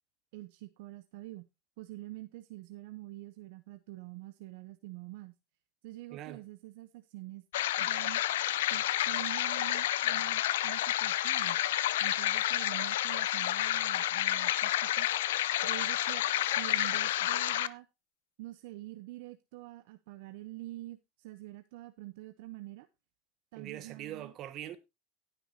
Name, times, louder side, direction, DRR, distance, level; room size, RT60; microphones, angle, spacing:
voice 1, 0.3-1.5 1.8-5.3 5.8-7.4 7.8-8.2 8.6-11.6 12.0-15.1 15.6-17.9 18.4-22.9 23.5-24.3, right 18 dB, 70° right, 0.7 m, -46 dB
voice 2, 6.1-6.4 23.5-24.8, right 12 dB, 45° right, 1.5 m, -42 dB
sound 1, 7.5-17.7, left 13 dB, 85° left, 0.5 m, -30 dB
18.5 x 6.1 x 2.7 m
supercardioid pair, 110°, 0 cm